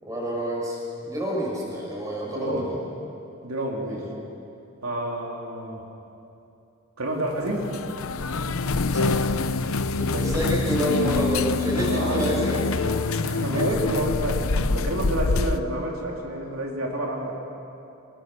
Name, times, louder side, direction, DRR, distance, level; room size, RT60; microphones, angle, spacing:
voice 1, 0.0-2.8 3.8-4.1 8.9-9.2 10.0-12.6 13.2-13.3 13.6-13.7, right 1 dB, 15° right, -3 dB, 6.2 m, -28 dB
voice 2, 2.2-2.7 3.4-4.0 4.8-5.9 7.0-7.7 10.1-10.3 11.9-12.3 12.9-13.0 13.2-17.4, right 1 dB, 85° right, -1 dB, 3.2 m, -29 dB
sound 1, 7.3-15.6, left 3 dB, 75° left, 0.7 m, -25 dB
25.5 x 21.0 x 7.0 m, 2.8 s
head